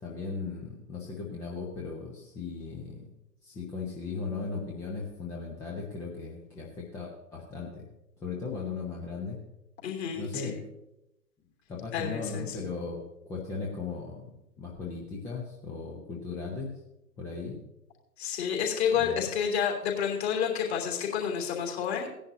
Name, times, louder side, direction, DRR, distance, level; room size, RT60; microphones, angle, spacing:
voice 1, 0.0-3.1 3.4-7.9 8.2-9.4 10.1-10.6 11.7-16.7 17.2-17.6 18.9-19.2, left 4 dB, 5° left, -3 dB, 0.6 m, -37 dB
voice 2, 9.8-10.5 11.9-12.5 18.2-22.1, left 8 dB, 40° left, 0 dB, 3.2 m, -29 dB
17.0 x 10.5 x 2.7 m, 0.86 s
figure-of-eight pair, 115°, 47 cm